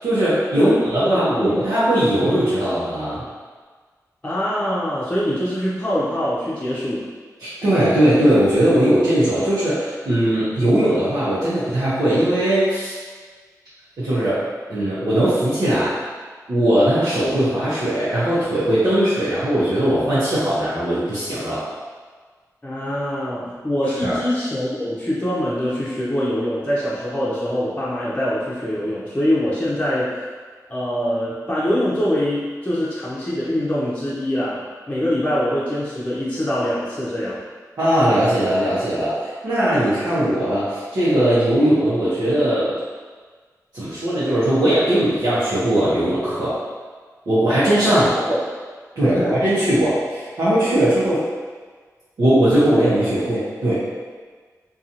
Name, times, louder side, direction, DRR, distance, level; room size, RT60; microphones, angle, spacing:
voice 1, 0.0-3.2 7.4-13.0 14.0-14.4 14.7-15.9 16.5-21.6 24.0-24.2 37.8-42.7 43.7-46.6 47.3-48.3 49.0-51.2 52.2-53.8, right 1 dB, 80° right, -13 dB, 0.8 m, -19 dB
voice 2, 1.0-1.7 2.2-2.3 4.2-7.0 22.6-30.2 30.7-34.6 34.9-37.4 47.8-48.0 48.3-48.4 49.1-49.4, equal, 20° left, -9 dB, 0.7 m, -23 dB
2.7 x 2.3 x 2.6 m, 1.5 s
cardioid pair, 60°, 7 cm